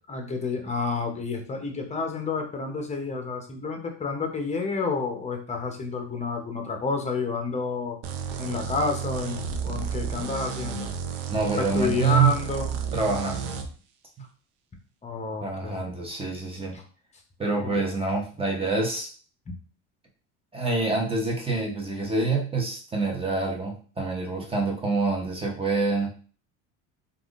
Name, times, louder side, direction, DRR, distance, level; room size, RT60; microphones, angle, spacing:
voice 1, 0.1-8.0 8.4-10.9 11.6-12.8 15.0-15.8 16.7-16.8 17.6-17.8 19.5-19.6, left 4 dB, 20° left, 3 dB, 0.7 m, -30 dB
sound 1, 8.0-13.7, right 7 dB, 75° right, 0.6 m, -32 dB
voice 2, 11.3-12.3 12.9-13.6 15.4-16.8 17.4-19.1 20.5-26.1, right 4 dB, 15° right, 0 dB, 0.8 m, -26 dB
3.4 x 2.5 x 2.4 m, 0.40 s
supercardioid pair, 110°, 34 cm